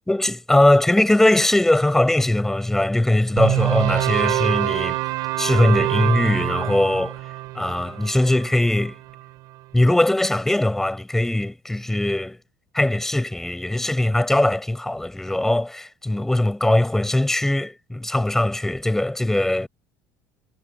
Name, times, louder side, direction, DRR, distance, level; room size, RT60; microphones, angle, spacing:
voice 1, 0.1-5.0 5.4-7.2 7.6-9.0 9.7-12.4 12.7-19.7, left 1 dB, 5° left, 5.5 m, -20 dB
sound 1, 3.4-9.6, right 18 dB, 60° right, 6.2 m, -25 dB
cardioid pair, 150°, 7 cm